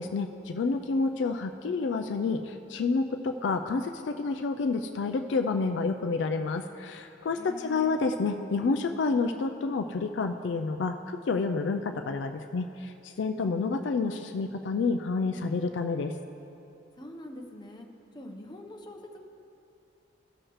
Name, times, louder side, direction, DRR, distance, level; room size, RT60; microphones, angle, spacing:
voice 1, 0.0-12.9 13.2-16.1, left 4 dB, 65° left, 6 dB, 0.4 m, -29 dB
voice 2, 7.3-8.0 17.0-17.9 18.1-19.2, left 1 dB, 25° left, 1 dB, 0.7 m, -44 dB
16.0 x 6.4 x 3.0 m, 2.8 s
head